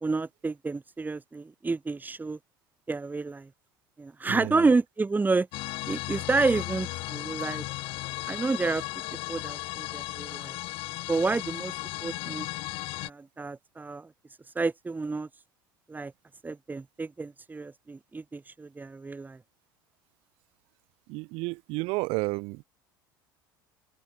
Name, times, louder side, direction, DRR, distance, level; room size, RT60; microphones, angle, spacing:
voice 1, 0.0-2.4 2.9-3.5 4.0-5.5 5.9-7.6 8.3-8.8 9.3-10.6 11.1-11.8 12.0-12.5 13.0-14.1 14.6-15.3 15.9-16.1 16.4-19.4, right 3 dB, 15° right, 2.1 m, -29 dB
voice 2, 4.3-4.7 21.1-22.6, right 26 dB, 55° right, 3.1 m, -31 dB
sound 1, 5.5-13.1, left 21 dB, 55° left, 1.6 m, -35 dB
open air
figure-of-eight pair, 65°, 11 cm